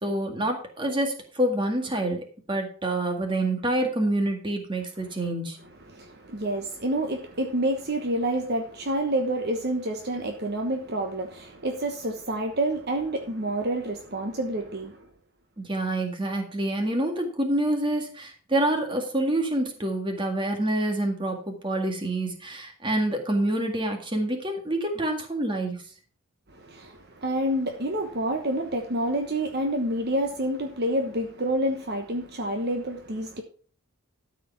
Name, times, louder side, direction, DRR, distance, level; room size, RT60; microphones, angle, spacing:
voice 1, 0.0-5.6 15.6-25.8, right 1 dB, 20° right, 1.9 m, -27 dB
voice 2, 5.9-15.0 26.5-33.4, right 1 dB, 45° right, 1.1 m, -28 dB
12.5 x 5.0 x 5.8 m
head